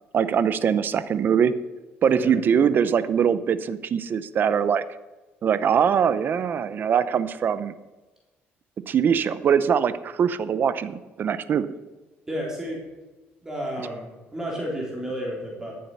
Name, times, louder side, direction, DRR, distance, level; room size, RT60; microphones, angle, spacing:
voice 1, 0.1-1.6 2.0-4.8 5.4-7.7 8.9-11.7, right 7 dB, 45° right, 14 dB, 0.7 m, -22 dB
voice 2, 12.3-12.9 13.4-15.8, equal, 15° right, -3 dB, 3.4 m, -31 dB
13.5 x 7.7 x 5.5 m, 1.2 s
cardioid pair, 115°, 4 cm